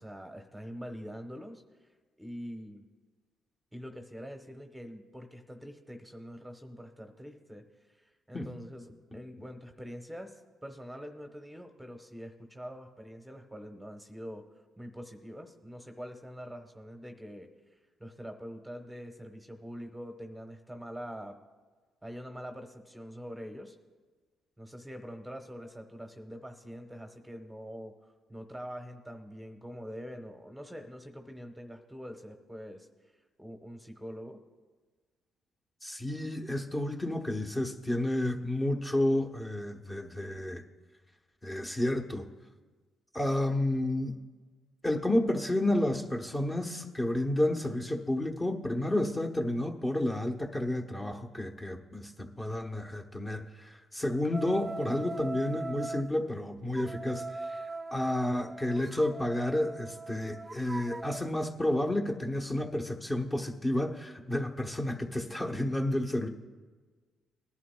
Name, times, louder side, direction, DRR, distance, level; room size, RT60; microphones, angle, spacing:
voice 1, 0.0-1.6 2.2-2.8 3.7-10.4 10.6-14.4 14.8-21.4 22.0-23.8 24.6-27.9 28.3-32.9 33.4-34.4, equal, 5° right, 5 dB, 1.0 m, -44 dB
voice 2, 35.8-40.6 41.4-42.3 43.1-44.2 44.8-66.3, left 1 dB, 20° left, 2 dB, 1.1 m, -31 dB
sound 1, 54.3-56.1 56.8-61.2, right 3 dB, 20° right, 0.5 m, -41 dB
20.0 x 11.0 x 2.3 m, 1.4 s
cardioid pair, 90°, 0 cm